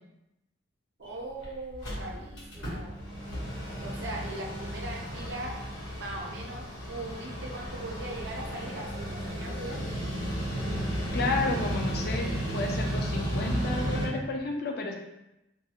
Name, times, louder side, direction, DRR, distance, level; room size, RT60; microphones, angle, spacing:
Mechanical fan, 1.0-1.1 1.4-1.5 1.7-14.1, equal, 80° left, 1.2 m, -33 dB
voice 1, 1.0-3.0 3.8-5.6 5.9-9.9, right 1 dB, 60° right, -2 dB, 0.6 m, -40 dB
voice 2, 11.1-12.3 12.5-14.9, left 3 dB, 55° left, 2 dB, 0.4 m, -31 dB
2.6 x 2.4 x 2.8 m, 0.90 s
head